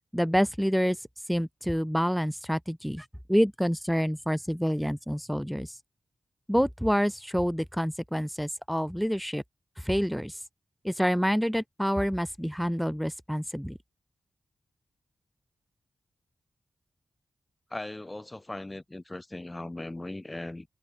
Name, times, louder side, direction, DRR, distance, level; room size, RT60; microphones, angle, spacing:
voice 1, 0.1-5.8 6.5-9.4 9.8-10.4 10.8-13.8, equal, ahead, 4.3 m, -27 dB
voice 2, 17.7-20.7, left 2 dB, 25° left, 6.0 m, -38 dB
cardioid pair, 45°, 0 cm